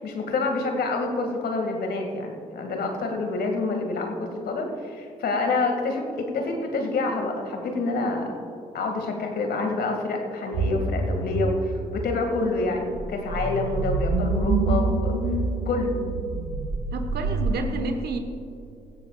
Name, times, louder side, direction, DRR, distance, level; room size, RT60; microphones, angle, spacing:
voice 1, 0.0-8.3 8.7-15.2 15.7-15.9, left 3 dB, 60° left, 3 dB, 2.2 m, -27 dB
sound 1, 10.5-17.5, right 3 dB, 80° right, 1.7 m, -27 dB
voice 2, 16.9-18.2, right 3 dB, 60° right, 6 dB, 1.3 m, -30 dB
17.0 x 15.5 x 2.4 m, 2.5 s
hypercardioid pair, 45°, 18 cm